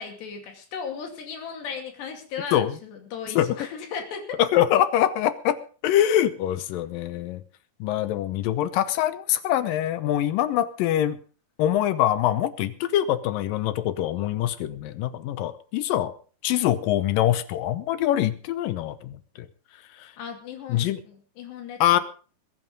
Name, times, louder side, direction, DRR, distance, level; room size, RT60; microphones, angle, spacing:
voice 1, 0.0-4.4 20.2-22.0, left 6 dB, 90° left, 4 dB, 4.7 m, -36 dB
voice 2, 4.4-5.6 5.8-7.4 7.8-11.2 11.6-16.1 16.4-19.5 20.0-20.1 20.7-21.0 21.8-22.0, left 12 dB, 75° left, 14 dB, 2.2 m, -24 dB
21.5 x 9.1 x 5.3 m, 0.39 s
omnidirectional pair, 4.7 m